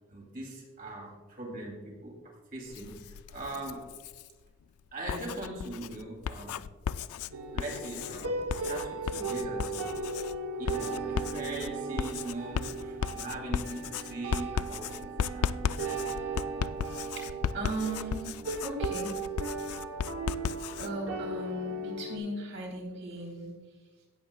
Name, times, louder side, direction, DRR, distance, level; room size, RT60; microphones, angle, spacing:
voice 1, 0.1-3.9 4.9-6.6 7.5-8.3 8.6-10.1 10.6-15.5, right 1 dB, 40° right, -1 dB, 2.5 m, -40 dB
Writing, 2.7-4.3 4.9-20.9, left 7 dB, 80° left, 0.3 m, -36 dB
sound 1, 7.3-22.2, right 3 dB, 80° right, 1.0 m, -37 dB
voice 2, 17.5-18.3 18.6-19.1 20.8-23.5, right 2 dB, 55° right, -1 dB, 3.1 m, -36 dB
17.5 x 8.0 x 2.2 m, 1.3 s
head